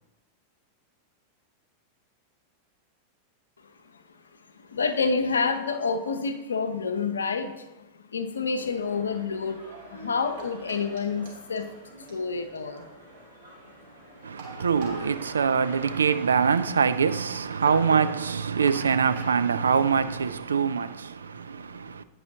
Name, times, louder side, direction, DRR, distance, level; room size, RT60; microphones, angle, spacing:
voice 1, 4.7-11.7 12.1-12.9, left 4 dB, 70° left, 0.6 m, -28 dB
sound 1, 8.5-16.2, right 1 dB, 90° right, 1.9 m, -47 dB
sound 2, 10.1-20.8, right 3 dB, 50° right, 2.4 m, -48 dB
voice 2, 14.2-22.0, right 6 dB, 70° right, 0.3 m, -24 dB
9.2 x 5.4 x 2.8 m
figure-of-eight pair, 90°, 0 cm